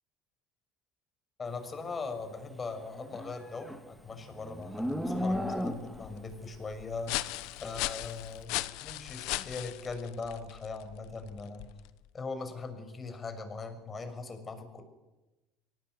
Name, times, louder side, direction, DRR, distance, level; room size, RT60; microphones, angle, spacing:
voice 1, 1.4-7.2 7.6-8.5 8.8-11.6 12.1-14.8, left 4 dB, 25° left, 7 dB, 6.4 m, -40 dB
Livestock farm animals working animals, 2.9-6.2, equal, ahead, 2.9 m, -34 dB
sound 1, 4.6-12.1, left 19 dB, 75° left, 1.1 m, -39 dB
24.5 x 18.5 x 9.9 m, 1.0 s
supercardioid pair, 100°, 0 cm